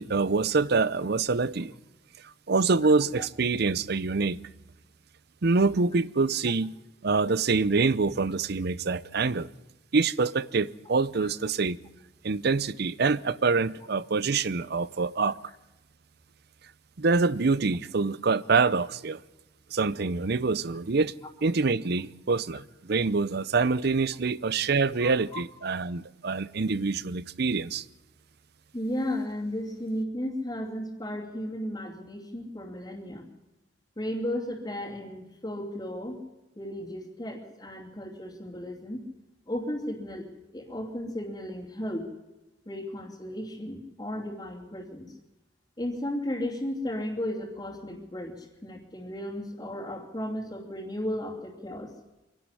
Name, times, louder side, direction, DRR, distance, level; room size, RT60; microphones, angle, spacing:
voice 1, 0.0-1.7 2.5-4.4 5.4-6.8 7.0-9.5 9.9-11.8 12.2-15.4 17.0-19.2 19.7-21.1 21.4-27.8, right 4 dB, 60° right, 0.7 m, -25 dB
voice 2, 25.0-25.4 28.7-33.3 34.0-36.2 36.6-39.0 39.5-40.3 40.5-42.1 42.7-45.1 45.8-51.9, left 1 dB, 25° left, 2.9 m, -34 dB
25.0 x 11.5 x 9.8 m
head